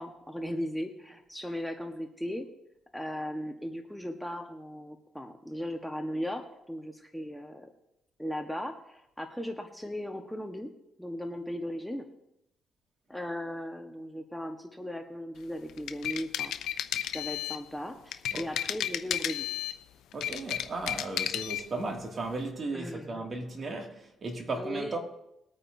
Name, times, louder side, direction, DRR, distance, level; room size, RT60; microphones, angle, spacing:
voice 1, 0.0-2.4 2.9-7.7 8.2-10.7 11.0-12.0 13.1-16.5 17.1-19.5 22.7-23.3 24.5-25.0, equal, ahead, 1.2 m, -37 dB
sound 1, 15.7-17.7 18.1-19.8 20.1-21.7, left 11 dB, 80° left, 0.6 m, -33 dB
voice 2, 20.1-25.0, right 2 dB, 40° right, 2.2 m, -36 dB
21.5 x 8.9 x 2.7 m
cardioid pair, 90°, 0 cm